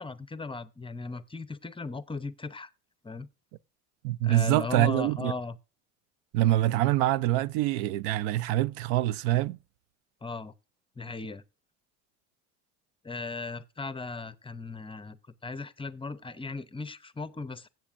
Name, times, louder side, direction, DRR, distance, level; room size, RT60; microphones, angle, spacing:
voice 1, 0.0-2.7 3.0-3.3 4.2-5.6 10.2-10.5 11.0-11.4 13.0-17.7, left 3 dB, 15° left, 0.6 m, -37 dB
voice 2, 4.0-5.3 6.3-9.6, right 15 dB, 75° right, 0.5 m, -25 dB
17.0 x 7.5 x 2.5 m
supercardioid pair, 90°, 38 cm